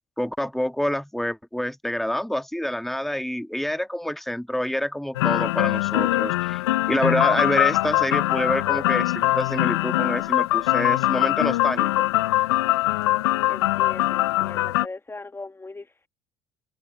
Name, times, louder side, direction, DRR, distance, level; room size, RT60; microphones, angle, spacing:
voice 1, 0.2-6.6 6.9-12.1, left 1 dB, ahead, 1.6 m, -27 dB
sound 1, 5.1-14.9, left 17 dB, 80° left, 0.4 m, -22 dB
voice 2, 13.5-16.1, left 3 dB, 15° left, 1.5 m, -39 dB
hypercardioid pair, 60°, 13 cm